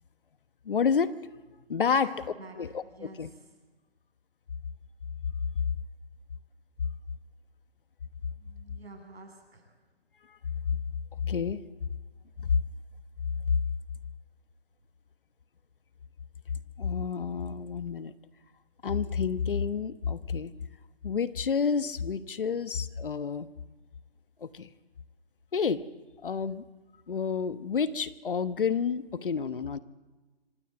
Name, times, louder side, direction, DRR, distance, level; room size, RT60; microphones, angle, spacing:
voice 1, 0.6-1.1 1.7-2.1 2.6-3.3 11.2-11.6 12.4-12.5 16.8-18.1 18.8-20.5 21.0-23.5 24.4-24.7 25.5-25.8 26.2-26.6 27.1-29.8, left 6 dB, 60° left, 13 dB, 1.1 m, -29 dB
voice 2, 1.9-3.5 8.4-9.7, right 3 dB, 75° right, 4 dB, 7.8 m, -48 dB
25.5 x 17.5 x 8.1 m, 1.3 s
hypercardioid pair, 170°, 31 cm